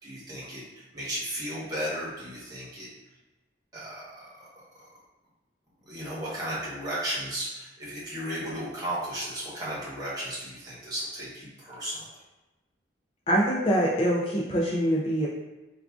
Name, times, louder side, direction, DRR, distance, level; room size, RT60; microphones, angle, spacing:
voice 1, 0.0-2.9 3.7-4.5 5.9-12.1, equal, 20° right, -8 dB, 1.0 m, -35 dB
voice 2, 13.3-15.3, equal, 30° left, -4 dB, 0.3 m, -24 dB
4.6 x 2.4 x 2.3 m, 1.1 s
head